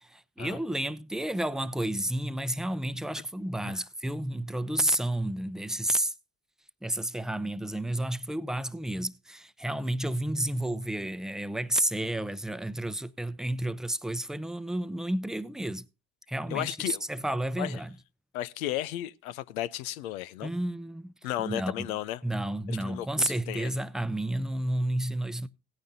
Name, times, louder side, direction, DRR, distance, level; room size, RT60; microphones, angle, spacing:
voice 1, 0.0-6.1 6.8-15.8 16.3-17.9 20.4-21.1 21.4-21.9 22.2-25.5, right 1 dB, ahead, 0.6 m, -31 dB
voice 2, 16.5-17.0 17.6-17.8 18.3-20.5 21.2-22.2 22.7-23.7, left 13 dB, 90° left, 0.5 m, -34 dB
17.0 x 9.6 x 2.7 m
hypercardioid pair, 55°, 41 cm